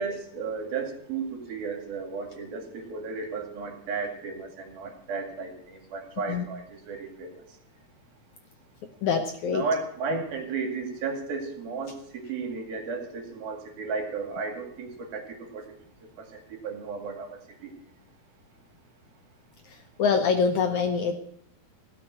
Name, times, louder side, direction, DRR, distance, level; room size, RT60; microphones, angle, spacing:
voice 1, 0.0-7.3 9.5-15.6 16.2-17.7, right 4 dB, 70° right, 4 dB, 4.0 m, -34 dB
voice 2, 9.0-9.6 10.1-10.2 19.6-21.1, left 5 dB, 75° left, 5 dB, 1.8 m, -25 dB
17.0 x 6.7 x 9.2 m, 0.66 s
omnidirectional pair, 4.6 m